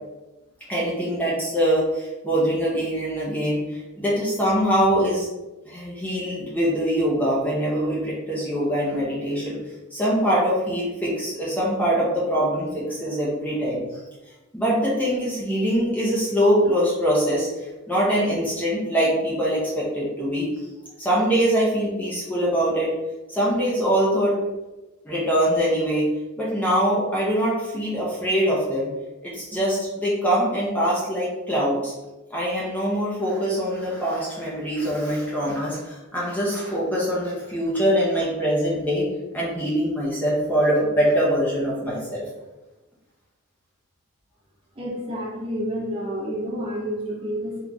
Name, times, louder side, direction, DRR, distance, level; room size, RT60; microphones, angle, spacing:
voice 1, 0.7-5.3 5.7-9.6 9.9-13.8 14.5-20.5 21.0-22.9 23.3-24.3 25.0-26.1 26.4-28.9 29.2-31.9 32.3-39.0 39.3-42.2, equal, 10° left, -6 dB, 0.6 m, -23 dB
voice 2, 44.7-47.6, equal, 25° right, -4 dB, 0.7 m, -29 dB
3.8 x 2.9 x 2.3 m, 1.1 s
head